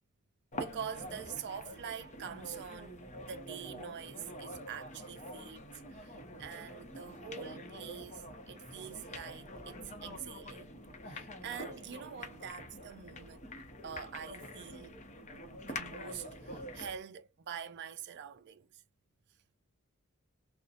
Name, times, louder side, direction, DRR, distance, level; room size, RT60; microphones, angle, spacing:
sound 1, 0.5-17.0, left 1 dB, 35° left, 0.6 m, -46 dB
voice 1, 0.5-10.7 11.1-13.5 13.8-15.0 15.6-18.8, right 8 dB, 55° right, 0.4 m, -45 dB
2.6 x 2.0 x 2.4 m
head